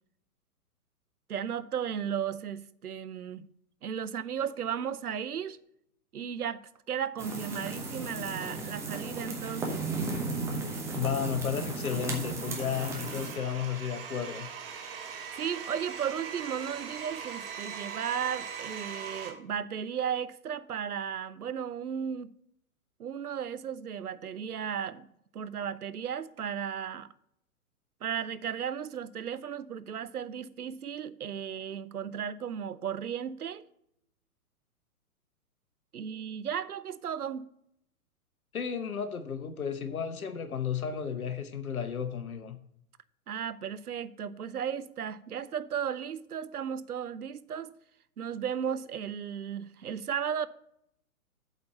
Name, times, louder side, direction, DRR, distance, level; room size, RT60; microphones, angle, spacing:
voice 1, 1.3-3.5 3.8-5.6 6.1-9.9 15.1-22.3 23.0-25.1 25.3-27.1 28.0-33.7 35.9-37.5 43.3-47.7 48.2-50.5, right 8 dB, 75° right, 0.7 m, -35 dB
sound 1, 7.2-13.4, right 3 dB, 5° right, 0.8 m, -35 dB
voice 2, 10.9-14.5 38.5-42.6, left 7 dB, 65° left, 1.0 m, -33 dB
Domestic sounds home sounds, 11.8-19.3, right 7 dB, 40° right, 1.4 m, -41 dB
8.0 x 4.4 x 6.8 m
figure-of-eight pair, 120°, 45 cm